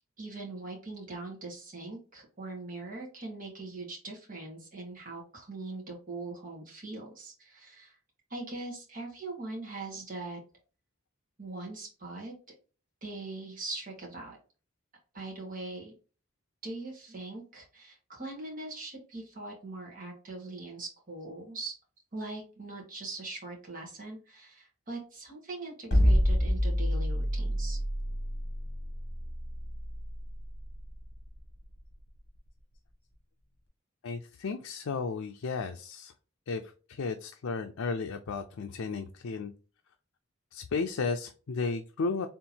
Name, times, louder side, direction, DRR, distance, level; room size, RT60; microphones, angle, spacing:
voice 1, 0.2-8.0 8.3-10.4 11.4-12.3 13.0-14.4 15.1-15.9 16.6-21.7 22.1-27.8, right 2 dB, 40° right, -1 dB, 1.8 m, -41 dB
sound 1, 25.9-32.1, equal, 50° left, 1.7 m, -28 dB
voice 2, 34.0-36.1 36.5-36.6 36.9-39.5 40.5-42.3, left 4 dB, 80° left, 6 dB, 0.5 m, -34 dB
4.4 x 3.5 x 2.8 m, 0.36 s
head